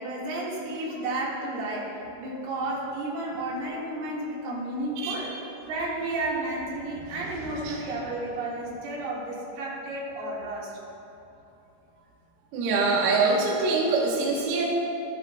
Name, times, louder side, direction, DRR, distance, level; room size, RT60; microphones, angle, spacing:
voice 1, 0.0-5.4 5.7-10.8, right 2 dB, 60° right, -5 dB, 3.1 m, -32 dB
voice 2, 12.5-14.6, right 3 dB, 80° right, -3 dB, 2.3 m, -24 dB
14.5 x 10.5 x 2.2 m, 2.9 s
omnidirectional pair, 5.8 m